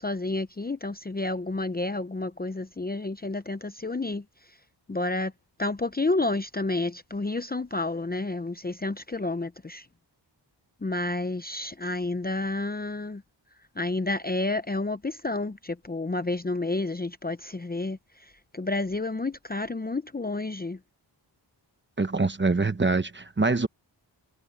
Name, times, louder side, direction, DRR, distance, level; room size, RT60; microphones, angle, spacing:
voice 1, 0.0-4.6 4.9-5.3 5.6-9.9 10.8-13.2 13.8-20.8, left 2 dB, 20° left, 0.7 m, -30 dB
voice 2, 22.0-23.7, right 3 dB, 25° right, 1.0 m, -24 dB
wide cardioid pair, 95°, 45 cm